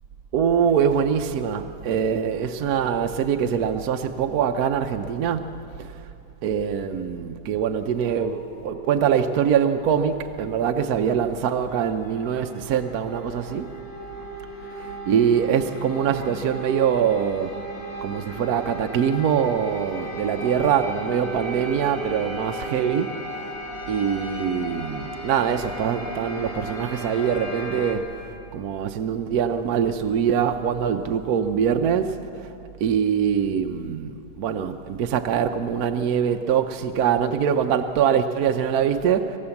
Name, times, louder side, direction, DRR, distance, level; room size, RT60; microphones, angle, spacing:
voice 1, 0.3-5.9 6.4-13.7 14.8-17.6 18.0-23.5 23.9-28.1 28.5-32.5 32.8-39.4, right 8 dB, 60° right, 1.1 m, -23 dB
sound 1, 8.0-27.9, right 1 dB, 60° left, 3.4 m, -36 dB
26.0 x 15.0 x 7.1 m
omnidirectional pair, 2.1 m